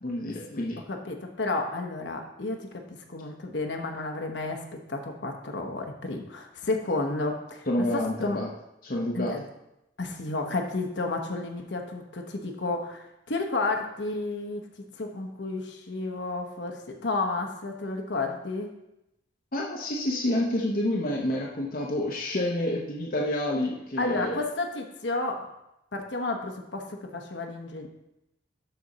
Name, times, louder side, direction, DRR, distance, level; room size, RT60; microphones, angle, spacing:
voice 1, 0.0-0.8 7.7-8.5 8.8-9.4 19.5-24.4, left 1 dB, 45° left, -2 dB, 0.8 m, -28 dB
voice 2, 0.9-7.9 8.2-8.4 9.1-9.4 10.0-14.6 15.0-18.7 24.0-25.5 25.9-27.9, left 2 dB, 65° left, 3 dB, 1.1 m, -31 dB
11.5 x 4.3 x 4.1 m, 0.88 s
head